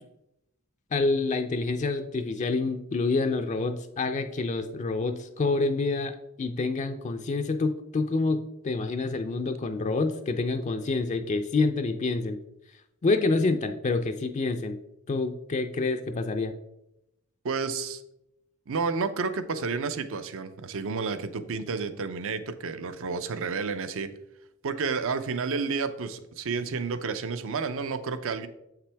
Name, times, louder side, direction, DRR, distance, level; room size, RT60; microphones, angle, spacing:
voice 1, 0.9-12.4 13.0-14.8 15.1-16.5, left 3 dB, 30° left, 6 dB, 0.4 m, -27 dB
voice 2, 17.4-18.0 18.7-24.1 24.6-28.5, right 4 dB, 65° right, 11 dB, 0.6 m, -30 dB
7.6 x 5.8 x 3.4 m, 0.86 s
head